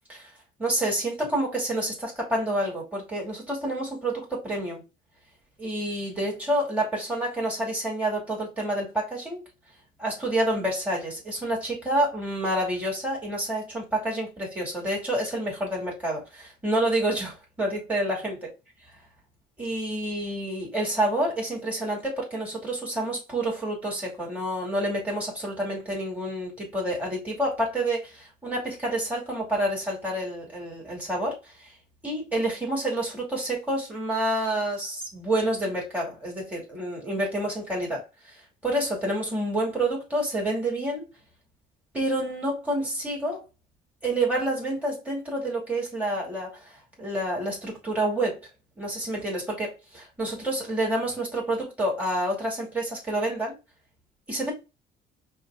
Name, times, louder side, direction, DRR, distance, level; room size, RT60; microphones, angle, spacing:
voice 1, 0.6-4.8 5.6-9.4 10.0-18.4 19.6-31.7 32.0-41.1 41.9-43.4 44.0-48.4 48.8-53.5 54.3-54.5, right 1 dB, 10° right, 2.6 m, -28 dB
5.2 x 2.5 x 3.6 m
cardioid pair, 110°, 17 cm